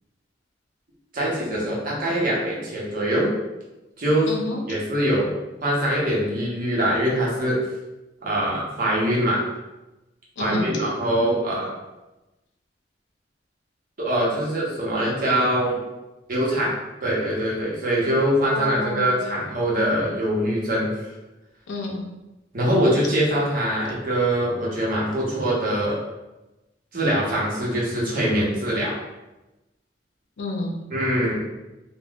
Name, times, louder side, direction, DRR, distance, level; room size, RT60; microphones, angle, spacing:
voice 1, 1.1-3.3 4.0-4.3 4.7-5.3 5.6-7.6 8.2-9.4 10.4-11.7 14.0-15.8 16.3-16.7 17.0-21.1 22.5-26.0 26.9-28.9 30.9-31.3, right 1 dB, 50° right, -5 dB, 0.9 m, -23 dB
voice 2, 4.3-4.6 10.4-10.7 18.5-19.1 21.7-22.0 30.4-30.8, left 1 dB, 80° left, 1 dB, 0.6 m, -29 dB
3.5 x 2.2 x 2.3 m, 1.0 s
head